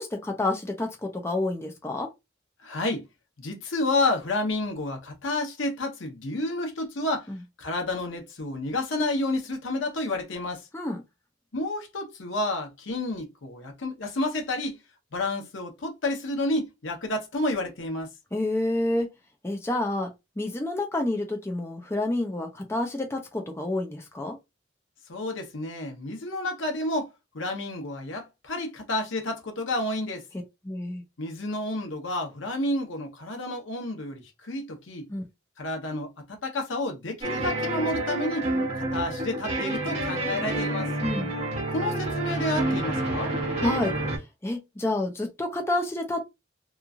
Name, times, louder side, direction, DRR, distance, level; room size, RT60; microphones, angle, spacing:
voice 1, 0.0-2.1 7.3-7.4 10.7-11.0 18.3-19.1 19.4-24.4 30.6-31.0 35.1-35.2 41.0-41.3 43.6-43.9 44.4-46.3, left 2 dB, 15° left, 0.5 m, -29 dB
voice 2, 2.6-3.0 3.4-7.3 7.6-10.7 11.5-14.8 15.1-18.1 25.1-30.2 31.2-35.1 35.6-38.5 38.9-40.9 41.7-43.3, left 2 dB, 80° left, 0.9 m, -30 dB
sound 1, 37.2-44.2, right 1 dB, 35° right, 1.2 m, -28 dB
3.0 x 2.5 x 2.4 m
head